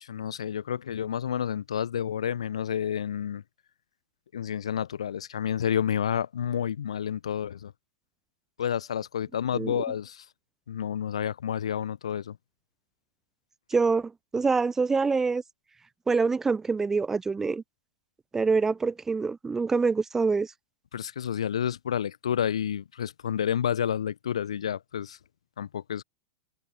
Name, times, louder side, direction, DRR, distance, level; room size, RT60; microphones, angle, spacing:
voice 1, 0.0-3.4 4.3-7.7 8.6-10.2 10.7-12.4 20.9-25.2 25.6-26.0, left 9 dB, 65° left, 1.2 m, -30 dB
voice 2, 13.7-15.4 16.1-17.6 18.3-20.5, right 4 dB, 10° right, 0.6 m, -25 dB
figure-of-eight pair, 95°, 3 cm